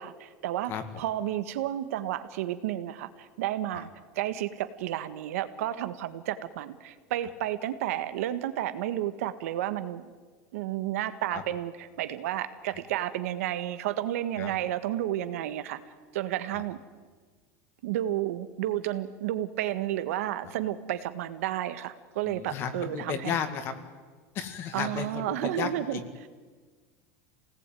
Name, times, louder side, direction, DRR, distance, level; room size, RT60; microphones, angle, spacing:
voice 1, 0.0-3.9 4.1-10.1 10.5-15.8 16.1-16.8 17.8-23.3 24.7-26.0, right 13 dB, 80° right, 11 dB, 1.7 m, -31 dB
voice 2, 0.7-1.0 3.7-3.9 11.3-11.4 14.4-14.5 16.5-16.6 22.2-23.7 24.3-26.1, left 7 dB, 30° left, 9 dB, 2.0 m, -34 dB
27.5 x 19.0 x 9.3 m, 1.5 s
supercardioid pair, 180°, 8 cm